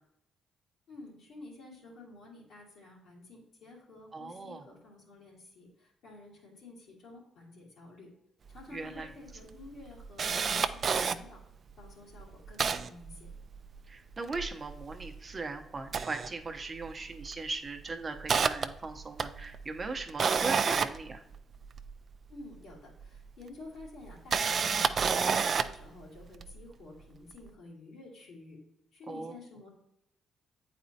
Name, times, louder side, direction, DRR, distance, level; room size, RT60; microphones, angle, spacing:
voice 1, 0.9-8.1 8.5-11.4 11.8-13.3 22.3-28.6 28.9-29.7, left 2 dB, 75° left, -4 dB, 2.4 m, -51 dB
voice 2, 4.1-4.7 8.7-9.1 13.9-21.2 29.1-29.4, right 3 dB, 30° right, 5 dB, 0.8 m, -39 dB
Camera, 8.6-8.7 9.0-9.1 9.5-11.2 11.8-11.9 12.2-13.8 14.1-15.3 15.8-16.9 17.2-17.5 17.9-21.9 23.0-23.1 24.0-25.8 26.4-26.5, right 6 dB, 50° right, 0.4 m, -30 dB
8.6 x 4.2 x 2.8 m, 0.80 s
cardioid pair, 90°, 0 cm